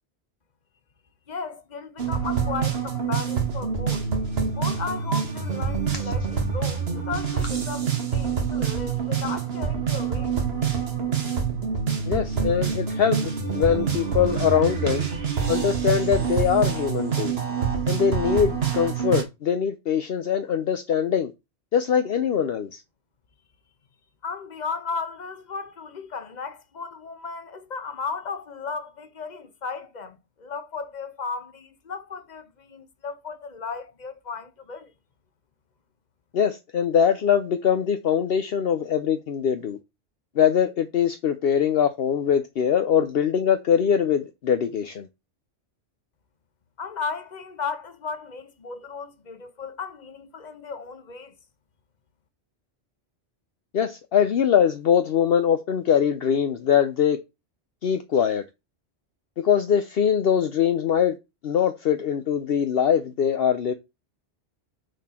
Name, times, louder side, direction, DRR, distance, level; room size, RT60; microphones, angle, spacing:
voice 1, 1.3-4.1 4.5-7.9 8.1-10.3 24.2-34.9 46.8-51.3, left 5 dB, 40° left, 1.1 m, -35 dB
sound 1, 2.0-19.2, right 6 dB, 65° right, 1.7 m, -26 dB
voice 2, 12.1-15.1 15.5-17.3 17.9-21.3 21.7-22.8 36.3-39.8 40.4-45.1 53.7-57.2 57.8-58.4 59.4-61.1 61.4-63.7, left 8 dB, 65° left, 0.9 m, -22 dB
9.2 x 4.3 x 4.4 m
omnidirectional pair, 1.1 m